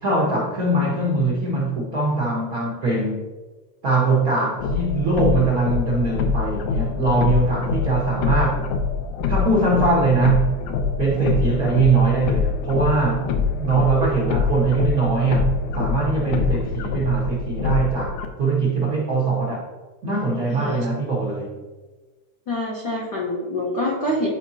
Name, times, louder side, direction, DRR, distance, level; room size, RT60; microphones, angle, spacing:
voice 1, 0.0-3.2 3.8-8.6 9.3-10.6 11.0-13.3 13.6-19.7 20.0-21.6, right 3 dB, 75° right, -6 dB, 0.8 m, -21 dB
sound 1, 4.6-18.3, left 5 dB, 90° left, 2.2 m, -25 dB
voice 2, 20.5-20.8 22.5-24.3, left 1 dB, 75° left, -4 dB, 1.0 m, -26 dB
10.5 x 4.7 x 2.7 m, 1.3 s
omnidirectional pair, 3.6 m